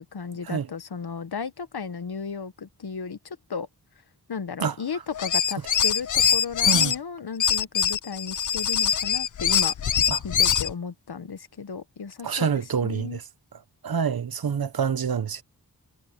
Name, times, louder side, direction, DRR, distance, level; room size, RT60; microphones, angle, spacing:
voice 1, 0.0-3.7 4.3-9.7 10.2-13.2, left 6 dB, 75° left, 1.4 m, -34 dB
sound 1, 5.1-6.9 7.4-10.7, left 8 dB, 50° left, 0.6 m, -23 dB
voice 2, 12.2-13.2 13.8-15.4, right 6 dB, 65° right, 1.1 m, -26 dB
wide cardioid pair, 55°, 39 cm